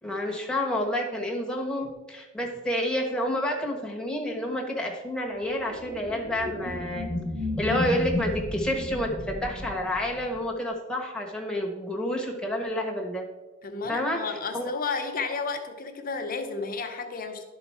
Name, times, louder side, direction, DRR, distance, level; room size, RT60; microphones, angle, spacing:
voice 1, 0.0-7.1 7.6-13.2 13.9-14.2 14.5-14.7, left 1 dB, 5° left, -1 dB, 1.2 m, -29 dB
sound 1, 5.4-10.4, left 1 dB, 30° right, 2.2 m, -33 dB
voice 2, 13.6-17.4, left 4 dB, 45° left, 4 dB, 0.9 m, -32 dB
11.5 x 4.0 x 4.3 m, 1.2 s
head